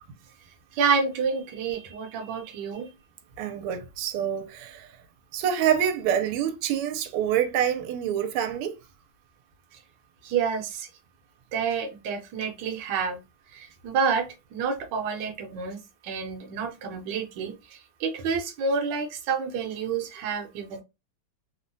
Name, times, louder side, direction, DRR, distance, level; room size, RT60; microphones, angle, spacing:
voice 1, 0.7-2.9 10.2-10.9 11.5-13.2 13.5-15.8 16.0-17.5 18.0-20.8, right 5 dB, 65° right, 1.2 m, -28 dB
voice 2, 3.4-5.0 5.3-8.8, right 9 dB, 85° right, 1.5 m, -26 dB
3.5 x 2.1 x 2.5 m
omnidirectional pair, 2.4 m